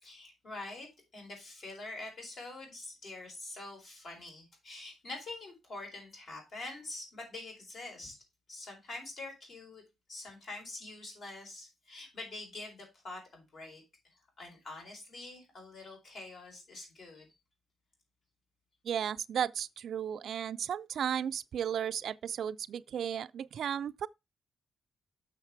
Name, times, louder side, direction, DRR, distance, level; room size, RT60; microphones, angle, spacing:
voice 1, 0.0-0.9 1.1-8.2 8.5-9.8 10.1-13.8 14.4-17.3, left 2 dB, 50° left, 4.3 m, -45 dB
voice 2, 18.8-24.1, right 9 dB, 65° right, 0.3 m, -34 dB
6.5 x 6.4 x 4.6 m
cardioid pair, 140°, 0 cm